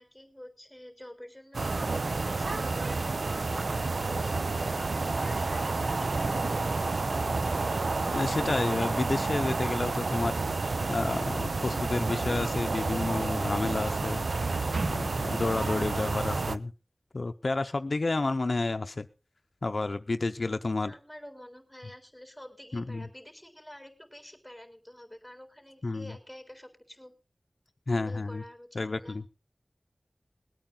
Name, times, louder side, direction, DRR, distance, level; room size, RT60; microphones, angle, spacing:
voice 1, 0.0-1.7 2.1-4.4 4.6-7.2 20.8-27.1 27.9-29.2, left 1 dB, ahead, 5 dB, 3.9 m, -48 dB
sound 1, 1.5-16.6, right 3 dB, 90° right, 0.6 m, -30 dB
voice 2, 8.1-10.3 10.9-14.2 14.8-16.7 17.1-19.1 19.6-20.9 22.7-23.1 25.8-26.1 27.9-28.4 28.8-29.2, left 3 dB, 70° left, 9 dB, 0.6 m, -30 dB
20.5 x 8.9 x 3.8 m, 0.32 s
wide cardioid pair, 50°, 0 cm